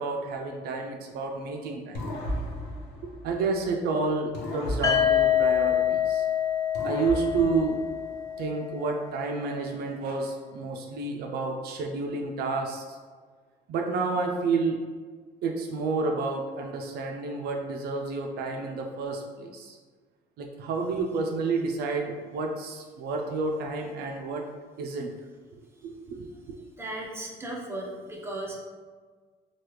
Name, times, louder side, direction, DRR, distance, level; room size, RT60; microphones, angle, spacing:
voice 1, 0.0-2.1 3.2-6.2 6.8-7.8 8.4-13.0 13.7-14.8 15.4-19.8 20.4-24.5 24.8-25.1 25.8-26.6, right 4 dB, 70° right, 2 dB, 0.4 m, -30 dB
sound 1, 1.9-3.8 4.3-6.2 6.7-8.5, equal, 90° left, 0.7 m, -36 dB
sound 2, 4.8-8.7, left 10 dB, 20° left, 0.3 m, -25 dB
voice 2, 26.8-28.6, right 1 dB, 15° right, -3 dB, 0.7 m, -36 dB
3.2 x 2.3 x 3.0 m, 1.5 s
cardioid pair, 110°, 17 cm